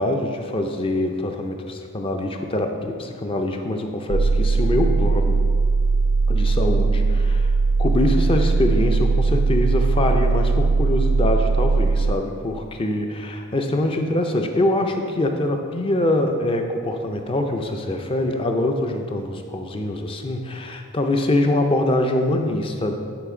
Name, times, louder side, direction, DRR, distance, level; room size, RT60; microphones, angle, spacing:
voice 1, 0.0-5.4 6.3-7.5 7.8-22.9, left 1 dB, 25° left, 4 dB, 0.5 m, -24 dB
sound 1, 4.1-12.1, right 4 dB, 70° right, 0.4 m, -19 dB
10.0 x 4.3 x 3.7 m, 2.2 s
head